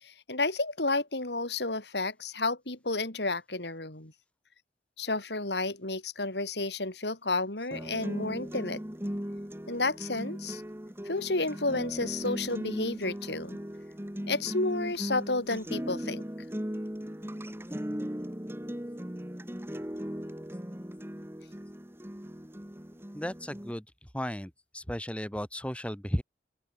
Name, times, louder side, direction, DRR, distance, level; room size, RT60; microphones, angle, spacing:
voice 1, 0.0-4.1 5.0-8.8 9.7-10.6 11.0-13.6 14.3-16.2, left 2 dB, 75° left, 4.8 m, -31 dB
sound 1, 7.7-23.7, equal, 15° right, 2.2 m, -38 dB
voice 2, 23.1-23.9 24.1-26.2, equal, 5° left, 5.5 m, -34 dB
open air
head